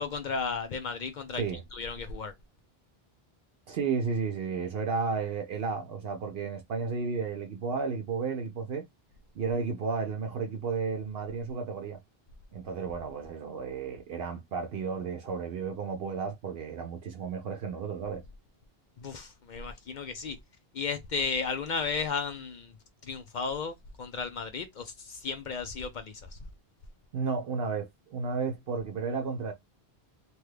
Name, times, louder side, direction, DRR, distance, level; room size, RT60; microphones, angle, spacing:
voice 1, 0.0-1.4 1.7-2.3 19.0-20.4 20.7-22.7 23.0-26.4, left 5 dB, 60° left, 0.6 m, -34 dB
voice 2, 3.7-8.8 9.3-12.0 12.5-18.2 27.1-29.5, right 5 dB, 70° right, 0.8 m, -33 dB
3.0 x 2.2 x 3.2 m
omnidirectional pair, 1.0 m